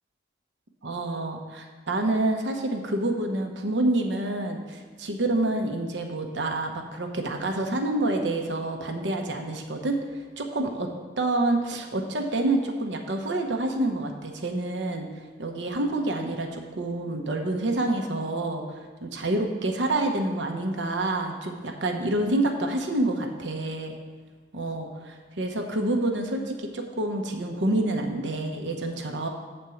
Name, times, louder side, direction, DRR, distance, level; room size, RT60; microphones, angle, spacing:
voice 1, 0.8-4.6 5.0-10.9 11.2-15.1 15.4-24.0 24.5-29.3, right 2 dB, 70° right, 3 dB, 0.9 m, -28 dB
7.8 x 4.4 x 7.0 m, 1.4 s
head